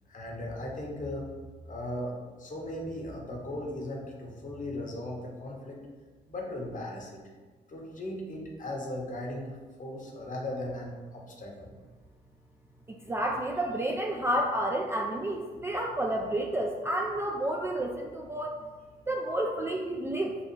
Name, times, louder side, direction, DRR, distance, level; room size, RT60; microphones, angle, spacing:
voice 1, 0.1-1.3 1.7-5.8 6.3-7.2 7.7-11.7, left 1 dB, 40° left, -1 dB, 0.9 m, -37 dB
voice 2, 12.9-18.6 19.1-20.4, right 1 dB, 10° right, 0 dB, 0.3 m, -30 dB
3.8 x 2.4 x 3.0 m, 1.4 s
figure-of-eight pair, 45°, 21 cm